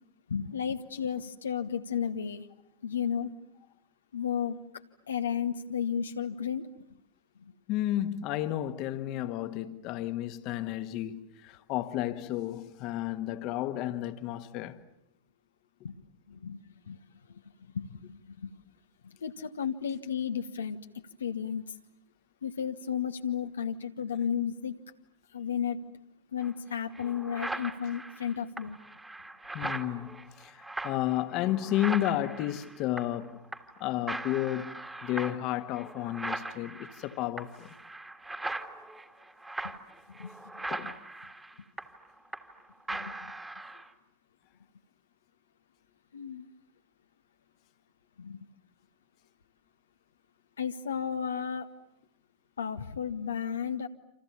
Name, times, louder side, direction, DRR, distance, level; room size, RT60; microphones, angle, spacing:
voice 1, 0.3-2.5 2.8-3.3 4.1-4.6 5.1-6.7 7.4-7.5 15.8-15.9 16.3-16.6 16.9-17.0 17.7-18.5 19.0-20.8 21.2-21.8 22.4-24.8 25.3-25.8 26.3-28.8 29.6-29.7 39.6-39.7 40.1-40.9 42.9-43.3 46.1-46.5 48.2-48.5 50.6-51.7 52.6-53.9, left 8 dB, 70° left, 1.2 m, -33 dB
voice 2, 7.7-14.8 29.5-33.4 33.8-37.7 40.7-41.0, left 13 dB, 40° left, 1.6 m, -32 dB
sound 1, 26.4-26.5 26.9-33.3 33.5-33.8 34.1-42.6 42.9-43.9, right 2 dB, 10° right, 2.1 m, -40 dB
29.0 x 27.5 x 7.2 m
figure-of-eight pair, 90°, 0 cm